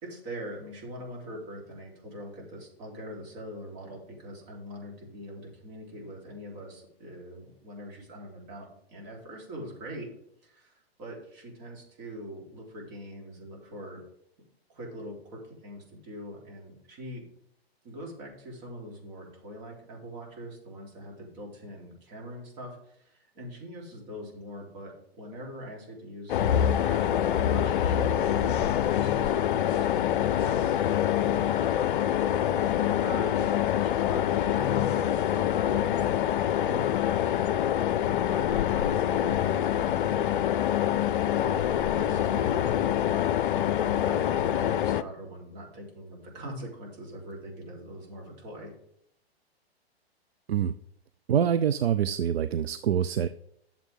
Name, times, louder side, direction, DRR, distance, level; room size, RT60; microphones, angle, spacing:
voice 1, 0.0-10.1 10.4-14.0 14.7-17.2 17.8-26.4 26.7-30.8 31.9-32.3 32.5-35.5 36.5-36.9 37.7-40.0 41.4-48.7, equal, 40° right, -1 dB, 3.7 m, -43 dB
sound 1, 26.3-45.0, left 10 dB, 55° left, 0.6 m, -25 dB
voice 2, 51.3-53.3, right 9 dB, 70° right, 13 dB, 0.5 m, -25 dB
11.5 x 7.3 x 3.6 m, 0.71 s
figure-of-eight pair, 115°, 32 cm